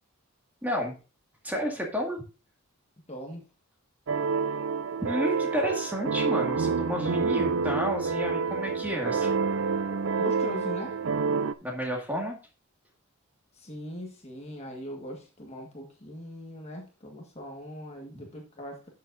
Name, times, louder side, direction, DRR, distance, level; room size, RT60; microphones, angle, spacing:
voice 1, 0.6-0.9 1.4-2.2 5.0-9.4 11.6-12.4, equal, 10° right, 0 dB, 1.9 m, -31 dB
voice 2, 3.1-3.4 10.1-11.0 13.5-18.9, equal, 30° left, 1 dB, 1.6 m, -40 dB
sound 1, 4.1-11.5, right 5 dB, 60° right, 0.5 m, -28 dB
12.0 x 7.0 x 2.6 m, 0.31 s
head